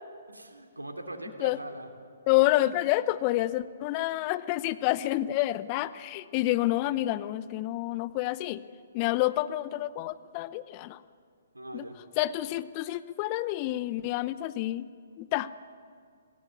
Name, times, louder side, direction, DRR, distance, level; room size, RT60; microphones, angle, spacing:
voice 1, 0.3-1.9 2.4-2.7 11.5-12.0, right 1 dB, 85° right, 5 dB, 2.9 m, -41 dB
voice 2, 2.3-8.6 8.9-11.0 11.7-11.8 12.2-14.9 15.2-15.5, left 16 dB, 30° left, 15 dB, 0.8 m, -28 dB
26.5 x 17.5 x 8.2 m, 2.2 s
figure-of-eight pair, 125°, 0 cm